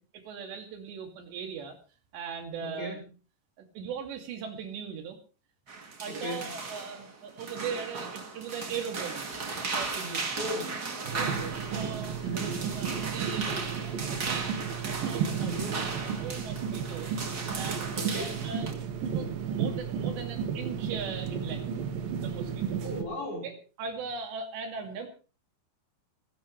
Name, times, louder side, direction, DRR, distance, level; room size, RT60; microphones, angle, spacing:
voice 1, 0.2-1.8 2.1-3.0 3.6-5.2 6.0-9.4 9.7-10.4 11.1-11.3 11.7-14.6 14.9-15.5 16.0-17.1 17.5-18.7 19.1-21.7 22.2-22.8 23.4-25.1, right 6 dB, 85° right, 5 dB, 4.7 m, -39 dB
voice 2, 2.6-3.0 6.1-6.5 10.3-10.8 11.1-11.5 12.2-12.6 15.4-15.8 17.9-18.4 22.8-23.5, equal, 35° left, 0 dB, 5.5 m, -37 dB
sound 1, 5.7-18.7, right 4 dB, 35° right, 1.7 m, -36 dB
sound 2, 11.1-23.0, right 7 dB, 60° right, 3.1 m, -33 dB
25.5 x 11.5 x 3.2 m, 0.35 s
omnidirectional pair, 4.9 m